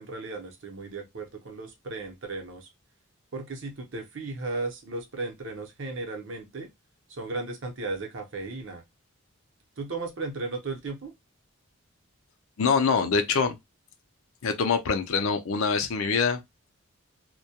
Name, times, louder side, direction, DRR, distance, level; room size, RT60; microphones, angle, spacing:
voice 1, 0.0-2.7 3.3-6.7 7.1-8.8 9.8-11.1, right 3 dB, 55° right, 0.7 m, -35 dB
voice 2, 12.6-13.6 14.4-16.4, left 5 dB, 70° left, 0.4 m, -24 dB
2.2 x 2.1 x 2.7 m
head